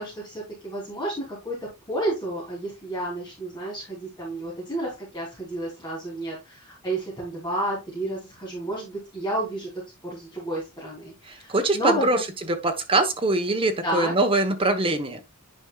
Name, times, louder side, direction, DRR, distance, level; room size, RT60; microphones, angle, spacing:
voice 1, 0.0-9.7 10.0-12.2 13.8-14.1, right 1 dB, 20° left, 3.2 m, -31 dB
voice 2, 11.3-12.2 12.5-15.2, right 2 dB, 25° right, 1.1 m, -23 dB
10.0 x 5.3 x 2.4 m
head